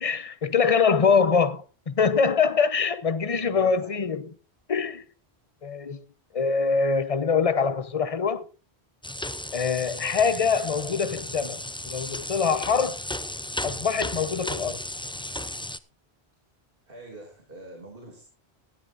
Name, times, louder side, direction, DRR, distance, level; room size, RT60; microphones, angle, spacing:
voice 1, 0.0-4.3 4.7-5.0 5.6-6.0 6.3-8.5 9.5-13.0 13.6-14.8, left 5 dB, 35° left, 0.9 m, -24 dB
voice 2, 3.3-4.0 16.9-18.2, right 2 dB, 60° right, 3.0 m, -44 dB
sound 1, 9.0-15.8, left 1 dB, 10° left, 0.3 m, -35 dB
18.5 x 13.0 x 2.6 m
omnidirectional pair, 1.1 m